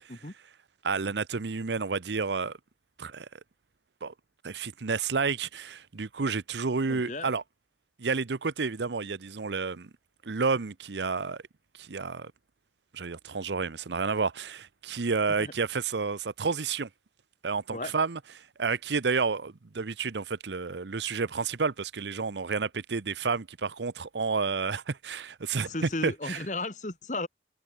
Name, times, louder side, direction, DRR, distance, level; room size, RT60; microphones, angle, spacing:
voice 1, 0.8-2.6 3.0-3.3 4.0-4.1 4.4-7.4 8.0-9.9 10.2-11.4 11.8-12.3 12.9-16.9 17.4-25.7 26.0-26.4, right 4 dB, 80° right, 0.8 m, -30 dB
voice 2, 6.9-7.3 15.4-15.5 17.7-18.0 25.6-27.3, left 2 dB, 45° left, 2.1 m, -35 dB
head